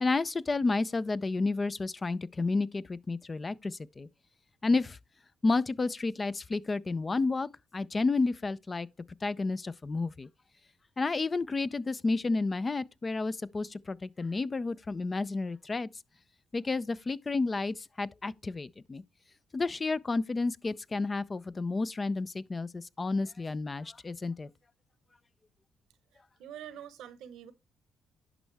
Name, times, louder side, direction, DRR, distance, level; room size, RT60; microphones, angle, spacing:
voice 1, 0.0-4.1 4.6-5.0 5.4-8.9 9.2-10.3 11.0-15.9 16.5-19.0 19.5-24.5, left 3 dB, 30° left, 0.4 m, -31 dB
voice 2, 26.4-27.5, right 10 dB, 85° right, 0.9 m, -45 dB
11.0 x 5.3 x 3.4 m
supercardioid pair, 70°, 0 cm